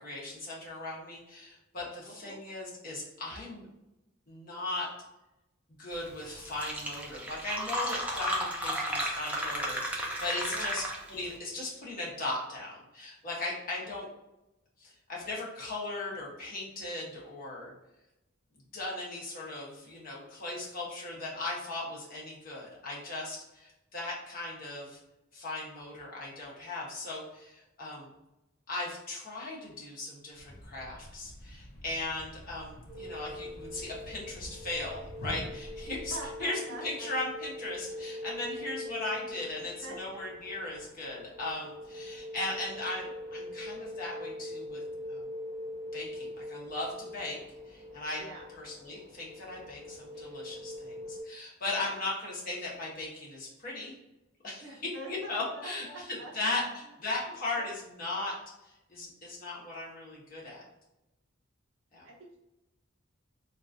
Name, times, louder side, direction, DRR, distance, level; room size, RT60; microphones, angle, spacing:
voice 1, 0.0-3.7 4.3-4.9 5.8-10.8 11.1-14.1 14.8-17.7 18.7-25.0 25.3-28.1 28.7-44.8 45.1-45.2 45.9-47.4 47.7-48.2 48.5-53.9 54.4-58.4 58.6-60.6 61.9-62.0, left 2 dB, 45° left, -4 dB, 1.0 m, -38 dB
voice 2, 2.0-2.4 10.5-10.8 35.8-37.1 39.6-40.2 48.2-48.5 51.8-52.0 54.6-56.6 57.6-57.7 62.0-62.4, right 2 dB, 70° right, -1 dB, 0.8 m, -45 dB
Fill (with liquid), 6.1-6.2 6.5-11.2, equal, 5° right, 0.5 m, -33 dB
Thump thud, 30.3-36.5, equal, 75° left, 0.7 m, -47 dB
sound 1, 32.9-51.2, left 1 dB, 30° right, 1.0 m, -43 dB
3.7 x 2.5 x 2.6 m, 0.94 s
head